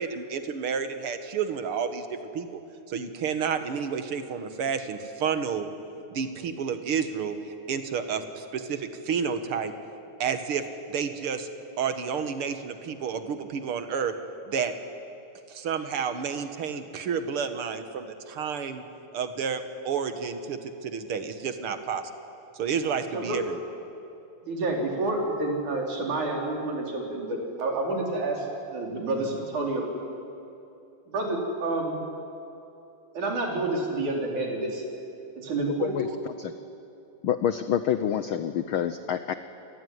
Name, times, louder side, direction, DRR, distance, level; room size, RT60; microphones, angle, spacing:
voice 1, 0.0-2.6 2.9-5.7 6.1-9.7 10.2-11.5 11.8-14.1 14.5-14.7 15.5-18.8 19.1-22.1 22.5-23.6, right 6 dB, 50° right, 8 dB, 2.2 m, -30 dB
voice 2, 24.4-28.5 28.7-29.8 31.1-32.0 33.2-34.8 35.4-36.0, right 2 dB, 80° right, 0 dB, 5.6 m, -29 dB
voice 3, 35.8-36.5 37.2-39.3, left 9 dB, 90° left, 10 dB, 1.1 m, -27 dB
28.0 x 20.5 x 9.6 m, 2.7 s
omnidirectional pair, 3.4 m